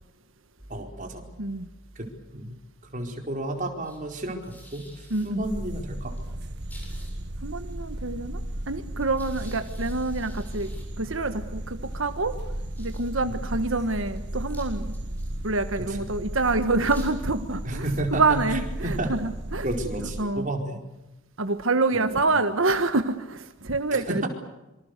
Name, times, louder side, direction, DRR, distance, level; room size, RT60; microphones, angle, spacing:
sound 1, 0.6-20.5, right 1 dB, 10° left, 7.1 m, -45 dB
voice 1, 0.7-1.2 2.0-2.6 2.9-4.9 5.2-6.1 13.3-13.4 15.9-16.1 17.6-19.1 19.6-20.8 21.9-22.4 23.9-24.3, right 1 dB, 40° right, 3 dB, 4.6 m, -32 dB
voice 2, 5.1-5.4 7.4-10.7 11.0-12.3 12.8-14.9 15.4-19.7 20.0-20.5 21.4-24.3, right 3 dB, 75° right, 9 dB, 1.5 m, -27 dB
sound 2, 5.4-20.2, right 1 dB, 55° right, 1.5 m, -35 dB
26.5 x 25.5 x 6.7 m, 1.0 s
head